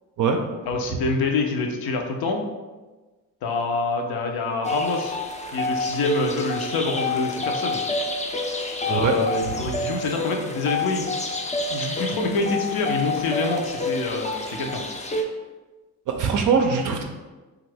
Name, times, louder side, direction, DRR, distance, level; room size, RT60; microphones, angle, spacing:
voice 1, 0.6-2.4 3.4-5.2 5.5-7.8 8.9-11.2 11.7-14.8, left 3 dB, 70° left, 2 dB, 0.6 m, -26 dB
sound 1, 4.6-15.2, left 2 dB, 20° left, 0.4 m, -28 dB
voice 2, 16.1-17.0, right 6 dB, 55° right, 3 dB, 0.4 m, -21 dB
2.7 x 2.4 x 3.3 m, 1.2 s
supercardioid pair, 60°, 38 cm